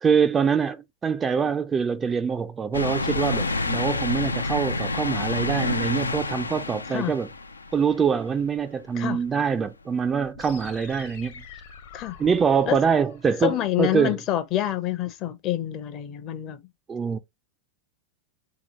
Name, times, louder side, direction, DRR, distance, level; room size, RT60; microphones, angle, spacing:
voice 1, 0.0-7.3 7.7-11.3 12.2-14.2 16.9-17.2, right 6 dB, 20° right, 0.4 m, -24 dB
sound 1, 2.7-8.3 8.8-8.9 10.2-10.3, left 3 dB, 80° left, 0.4 m, -28 dB
sound 2, 10.3-14.3, left 6 dB, 55° left, 1.0 m, -46 dB
voice 2, 13.4-16.6, left 13 dB, 35° left, 0.6 m, -27 dB
3.9 x 2.9 x 2.8 m
figure-of-eight pair, 90°, 0 cm